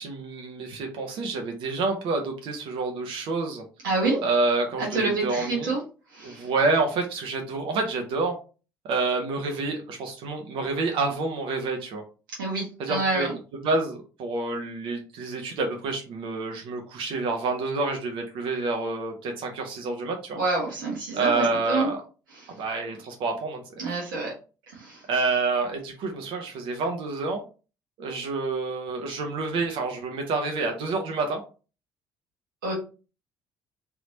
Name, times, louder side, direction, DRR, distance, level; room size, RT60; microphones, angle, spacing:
voice 1, 0.0-3.6 4.2-5.7 6.2-8.4 8.9-12.0 12.8-13.3 13.6-20.4 21.1-22.0 22.5-24.0 25.1-27.4 28.0-31.4, right 3 dB, 55° right, 3 dB, 0.8 m, -28 dB
voice 2, 3.8-4.2 4.8-5.8 6.1-6.5 12.4-13.3 20.3-21.9 22.4-22.5 23.8-24.3 24.7-25.0 32.6-32.7, right 3 dB, 75° right, -4 dB, 1.2 m, -27 dB
3.4 x 2.9 x 2.8 m, 0.34 s
figure-of-eight pair, 50°, 11 cm